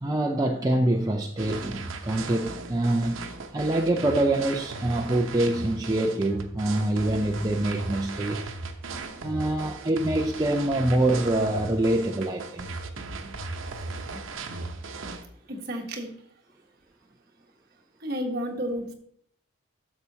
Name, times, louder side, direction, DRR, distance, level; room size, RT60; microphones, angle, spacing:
voice 1, 0.0-8.4 9.2-12.7, right 1 dB, 20° right, 0.5 m, -25 dB
sound 1, 1.4-15.2, right 3 dB, 75° right, 0.9 m, -37 dB
voice 2, 15.5-16.1 18.0-18.9, equal, 45° right, 1.3 m, -32 dB
10.5 x 6.9 x 2.8 m
head